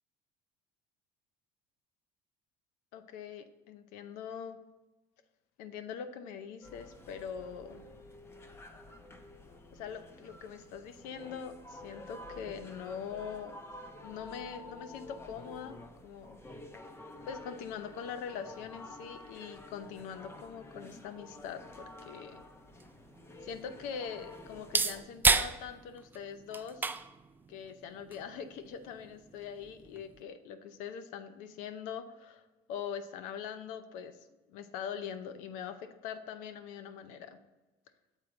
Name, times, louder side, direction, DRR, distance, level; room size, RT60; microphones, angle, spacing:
voice 1, 2.9-4.6 5.6-7.8 9.7-13.6 14.0-15.8 16.0-16.4 17.3-21.6 22.0-22.4 23.4-26.9 27.5-32.4 32.7-34.1 34.5-37.4, left 7 dB, 80° left, 10 dB, 0.7 m, -42 dB
sound 1, 6.6-25.0, left 2 dB, 20° left, 0.7 m, -50 dB
sound 2, 22.2-30.2, right 4 dB, 15° right, 0.3 m, -35 dB
7.3 x 4.4 x 3.8 m, 1.1 s
supercardioid pair, 105°, 13 cm